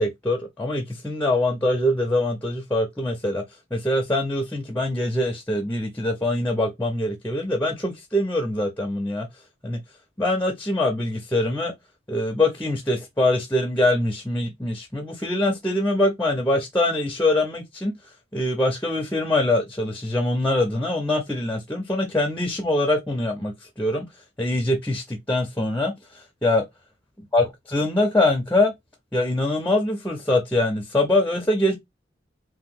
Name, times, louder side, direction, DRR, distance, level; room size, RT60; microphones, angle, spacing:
voice 1, 0.0-3.4 3.7-9.3 9.6-9.8 10.2-11.7 12.1-17.9 18.3-24.0 24.4-25.9 26.4-26.7 27.3-27.4 27.7-28.7 29.1-31.7, left 1 dB, 10° left, 0.5 m, -23 dB
2.8 x 2.2 x 3.5 m
head